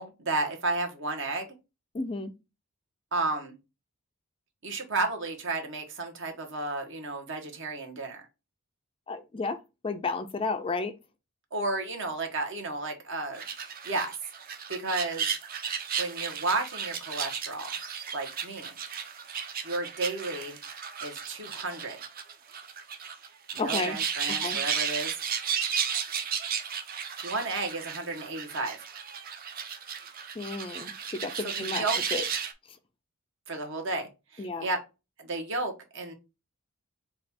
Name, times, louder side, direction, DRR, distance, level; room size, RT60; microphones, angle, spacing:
voice 1, 0.0-1.5 3.1-3.5 4.6-8.3 11.5-14.1 14.7-15.3 16.0-17.7 18.1-18.7 19.6-20.6 21.0-22.0 23.5-25.1 27.2-28.8 31.4-32.0 33.5-34.8 35.2-36.1, right 3 dB, 55° right, 1.2 m, -32 dB
voice 2, 1.9-2.3 9.1-9.6 9.8-10.9 23.6-24.0 24.4-24.6 30.4-31.8 32.1-32.2 34.4-34.7, left 3 dB, 25° left, 0.3 m, -32 dB
sound 1, 13.3-32.5, right 7 dB, 40° right, 0.6 m, -34 dB
5.2 x 2.4 x 4.3 m
head